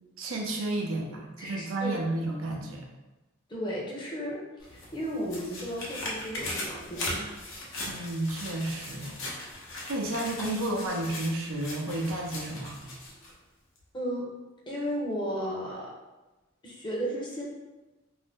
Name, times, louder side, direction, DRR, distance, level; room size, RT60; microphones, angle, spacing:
voice 1, 0.2-2.9 7.9-9.2 9.9-12.8, right 1 dB, 75° right, 0 dB, 0.5 m, -32 dB
voice 2, 1.4-2.0 3.5-7.3 13.9-14.3 14.7-15.9 16.6-17.4, equal, 20° left, -4 dB, 0.7 m, -34 dB
sound 1, 4.6-13.3 13.8-13.9, left 1 dB, 70° left, 0.7 m, -39 dB
2.6 x 2.1 x 3.4 m, 1.1 s
head